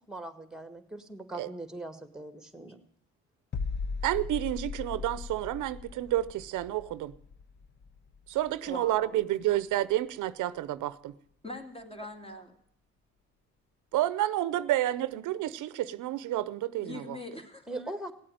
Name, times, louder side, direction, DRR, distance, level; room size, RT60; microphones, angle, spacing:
voice 1, 0.1-2.8 17.7-18.1, right 2 dB, ahead, 1.9 m, -40 dB
sound 1, 3.5-9.2 9.5-9.7, left 5 dB, 35° left, 0.8 m, -39 dB
voice 2, 4.0-7.1 8.3-11.1 13.9-17.2, right 14 dB, 85° right, 0.7 m, -30 dB
voice 3, 8.7-9.2 11.4-12.5 16.8-17.7, left 2 dB, 20° left, 2.5 m, -42 dB
17.0 x 8.6 x 9.0 m
cardioid pair, 90°, 30 cm